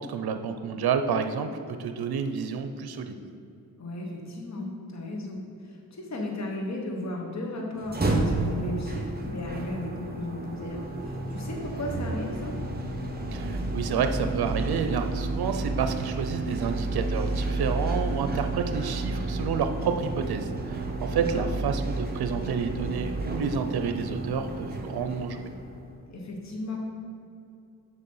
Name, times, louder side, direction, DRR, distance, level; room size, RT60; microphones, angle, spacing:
voice 1, 0.0-3.2 13.3-25.5, right 6 dB, 80° right, 8 dB, 0.6 m, -30 dB
voice 2, 3.8-12.5 21.3-21.5 26.1-26.8, left 1 dB, 45° left, 0 dB, 1.2 m, -35 dB
sound 1, 7.8-25.9, right 2 dB, 25° right, 1.1 m, -31 dB
6.7 x 5.1 x 5.5 m, 2.5 s
cardioid pair, 70°, 37 cm